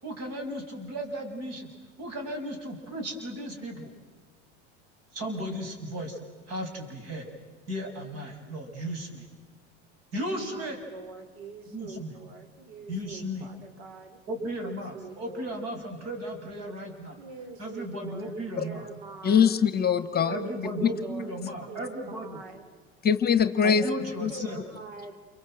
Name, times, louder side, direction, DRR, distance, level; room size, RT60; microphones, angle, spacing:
voice 1, 0.0-1.7 2.0-3.9 5.1-6.2 6.5-7.3 7.7-9.3 10.1-10.8 11.7-12.1 12.9-13.5 14.3-17.2 17.6-18.8 20.3-22.4 23.6-24.6, equal, 50° right, 4 dB, 7.2 m, -35 dB
voice 2, 10.1-15.6 17.2-18.3 18.6-19.6 20.1-21.4 21.7-22.7 24.3-25.2, right 4 dB, 80° right, 7 dB, 3.6 m, -44 dB
voice 3, 19.2-20.4 23.0-23.8 24.2-24.3, left 7 dB, 30° left, 12 dB, 1.3 m, -22 dB
29.0 x 24.5 x 7.9 m, 1.3 s
supercardioid pair, 110°, 32 cm